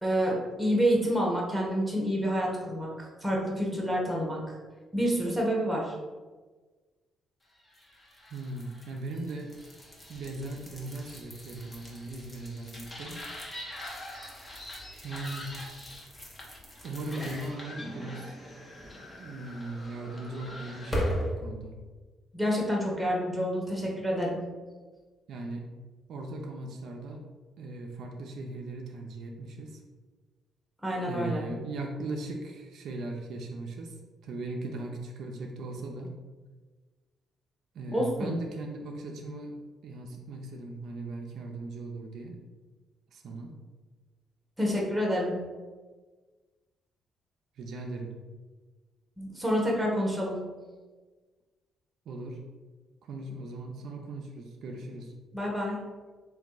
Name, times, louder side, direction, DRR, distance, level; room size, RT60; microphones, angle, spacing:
voice 1, 0.0-4.4 4.9-5.9 22.3-24.4 30.8-31.4 37.9-38.3 44.6-45.4 49.2-50.4 55.3-55.8, equal, ahead, -3 dB, 1.1 m, -28 dB
sound 1, 7.7-21.3, equal, 20° left, 1.1 m, -40 dB
voice 2, 8.3-9.5 10.1-13.2 15.0-15.5 16.8-18.3 18.8-18.9 19.2-21.8 25.3-25.6 26.1-27.2 27.6-29.8 31.1-33.9 34.2-36.1 37.7-39.5 39.8-42.4 43.1-43.5 47.6-48.1 52.1-52.4 53.0-55.1, right 2 dB, 70° right, 1 dB, 0.5 m, -38 dB
3.4 x 2.7 x 3.9 m, 1.3 s
cardioid pair, 90°, 0 cm